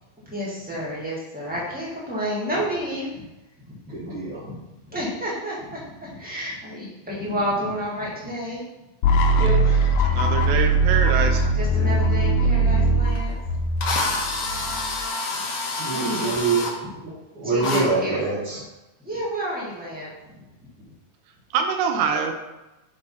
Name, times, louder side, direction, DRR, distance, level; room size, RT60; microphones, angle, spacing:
voice 1, 0.2-3.2 3.6-3.8 4.4-4.5 4.9-8.7 9.2-9.3 11.5-13.3 14.2-14.7 15.3-15.4 15.9-16.3 17.4-18.2 19.0-20.1 20.8-20.9, equal, 5° right, -6 dB, 0.8 m, -30 dB
voice 2, 3.9-4.4 6.2-6.4 9.4-10.0 15.8-16.7 17.0-18.6, right 4 dB, 55° right, -9 dB, 2.0 m, -26 dB
sound 1, 9.0-15.0, right 2 dB, 90° left, 2.0 m, -20 dB
voice 3, 10.1-11.5 15.9-16.3 21.5-22.3, right 6 dB, 80° right, 4 dB, 2.0 m, -25 dB
Drill, 13.2-13.3 13.8-16.7 17.6-17.8, left 3 dB, 70° left, 1.0 m, -27 dB
5.3 x 4.7 x 5.3 m, 1.0 s
omnidirectional pair, 3.3 m